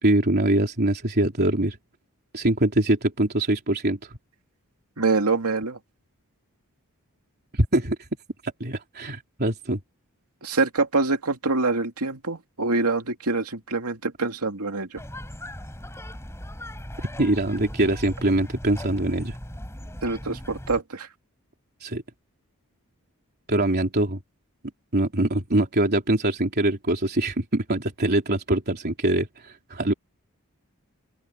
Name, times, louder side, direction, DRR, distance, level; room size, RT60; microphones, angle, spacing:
voice 1, 0.0-1.8 2.3-4.1 7.5-8.0 8.4-9.8 17.2-19.4 21.8-22.0 23.5-24.2 24.9-29.9, right 1 dB, 45° right, 3.5 m, -23 dB
voice 2, 5.0-5.8 10.4-14.9 20.0-21.1, right 3 dB, 85° right, 2.5 m, -25 dB
sound 1, 15.0-20.8, equal, 10° left, 5.0 m, -38 dB
open air
head